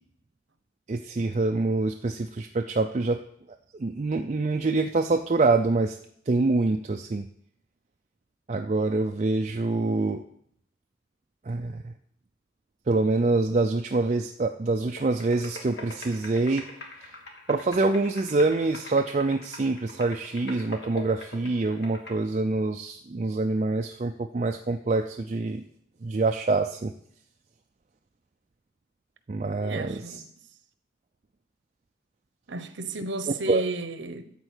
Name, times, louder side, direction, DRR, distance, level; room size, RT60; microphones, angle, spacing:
voice 1, 0.9-3.2 3.8-6.0 6.3-7.3 8.5-10.2 11.4-11.9 12.9-16.7 17.0-17.1 17.5-25.6 26.0-26.9 29.3-30.0 33.5-33.6, right 3 dB, 35° right, 0.4 m, -25 dB
sound 1, 15.0-22.1, left 1 dB, 70° left, 1.7 m, -43 dB
voice 2, 29.6-30.5 32.5-34.3, right 3 dB, 75° right, 0.9 m, -33 dB
12.5 x 4.3 x 8.1 m
head